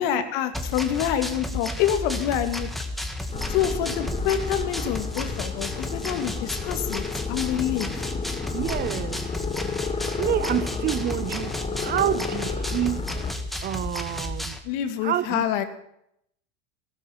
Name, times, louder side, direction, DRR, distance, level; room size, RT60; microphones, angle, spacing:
voice 1, 0.0-2.7 3.5-7.0 7.3-7.9 14.7-15.6, left 10 dB, 65° left, 2.3 m, -26 dB
sound 1, 0.5-14.6, left 1 dB, ahead, 1.6 m, -32 dB
sound 2, 3.3-13.3, left 6 dB, 20° left, 1.3 m, -32 dB
voice 2, 8.5-9.2 10.2-11.5 11.8-13.0 13.6-14.4 15.0-15.4, right 11 dB, 30° right, 0.5 m, -27 dB
18.0 x 12.0 x 5.9 m
supercardioid pair, 125°, 32 cm